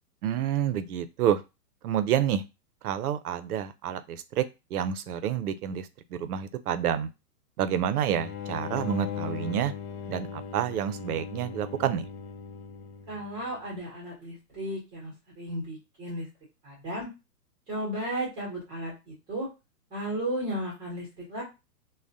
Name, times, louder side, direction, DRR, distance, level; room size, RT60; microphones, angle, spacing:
voice 1, 0.2-1.4 1.8-2.4 2.8-4.5 4.7-7.1 7.6-9.7 10.1-12.1, right 10 dB, 65° right, 12 dB, 0.5 m, -28 dB
sound 1, 8.1-13.5, left 8 dB, 60° left, 0.7 m, -38 dB
voice 2, 13.1-16.3 16.6-17.1 17.7-19.5 19.9-21.4, right 1 dB, 10° right, -3 dB, 0.6 m, -34 dB
3.4 x 2.1 x 2.6 m, 0.26 s
hypercardioid pair, 150°, 48 cm